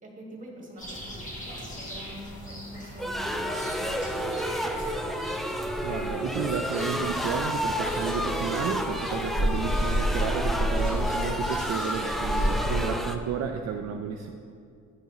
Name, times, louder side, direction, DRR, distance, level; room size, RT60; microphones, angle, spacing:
voice 1, 0.0-1.2 1.7-4.4 4.8-5.1, equal, 25° right, -1 dB, 1.7 m, -45 dB
sound 1, 0.8-12.9, equal, 25° left, 1.6 m, -32 dB
sound 2, 3.0-13.2, equal, ahead, 0.4 m, -30 dB
voice 2, 5.8-14.3, right 7 dB, 60° right, 4 dB, 0.5 m, -32 dB
10.5 x 4.6 x 3.0 m, 2.4 s
cardioid pair, 90°, 30 cm